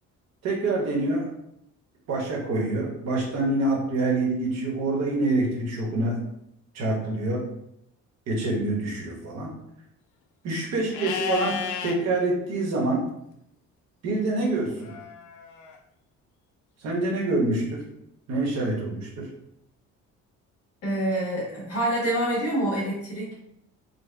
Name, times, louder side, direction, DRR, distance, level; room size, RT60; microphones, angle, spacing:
voice 1, 0.4-1.3 2.1-6.2 6.7-7.4 8.3-9.5 10.4-13.1 14.0-14.9 16.8-17.8 18.3-19.3, right 2 dB, 60° right, -2 dB, 1.1 m, -26 dB
Livestock farm animals working animals, 10.9-12.0 14.8-15.8, left 8 dB, 85° left, 0.5 m, -32 dB
voice 2, 20.8-23.3, right 1 dB, 50° left, -6 dB, 1.4 m, -26 dB
4.1 x 2.2 x 3.3 m, 0.78 s
cardioid pair, 175°, 30 cm